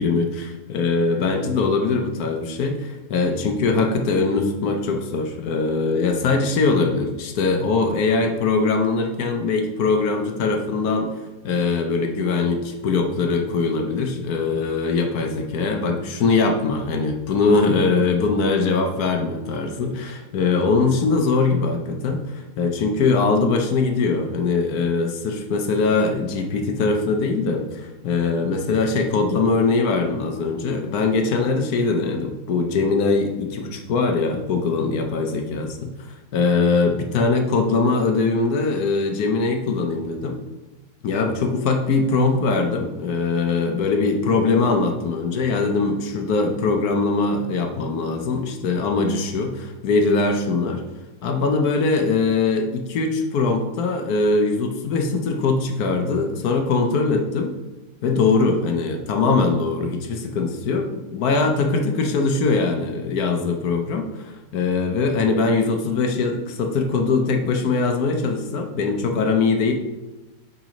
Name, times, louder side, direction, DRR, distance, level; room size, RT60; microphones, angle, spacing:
voice 1, 0.0-11.1 11.4-35.9 36.3-40.4 41.0-50.8 51.2-57.5 58.0-69.7, left 4 dB, 65° left, 4 dB, 1.2 m, -22 dB
5.9 x 3.9 x 5.1 m, 1.1 s
omnidirectional pair, 1.8 m